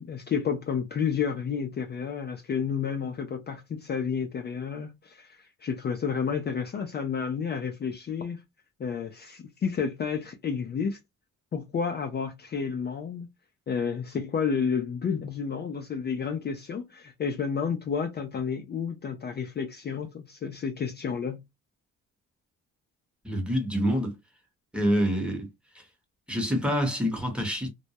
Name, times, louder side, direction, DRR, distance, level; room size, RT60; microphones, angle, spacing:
voice 1, 0.0-8.4 8.8-11.0 11.5-13.3 13.7-21.4, left 6 dB, 35° left, 0.4 m, -31 dB
voice 2, 23.2-24.2 24.7-25.5 25.7-25.8 26.3-27.7, equal, 5° right, 1.0 m, -26 dB
2.2 x 2.0 x 2.7 m
cardioid pair, 90°, 30 cm